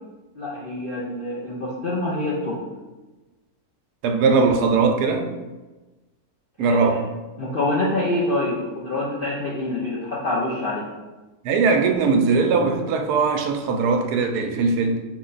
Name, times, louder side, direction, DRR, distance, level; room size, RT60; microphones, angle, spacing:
voice 1, 0.4-2.6 6.6-6.9 7.4-10.9, left 2 dB, 70° left, -5 dB, 0.5 m, -26 dB
voice 2, 4.0-5.3 6.6-7.0 11.4-15.0, right 4 dB, 85° right, 4 dB, 1.1 m, -20 dB
4.7 x 2.2 x 3.8 m, 1.2 s
omnidirectional pair, 1.7 m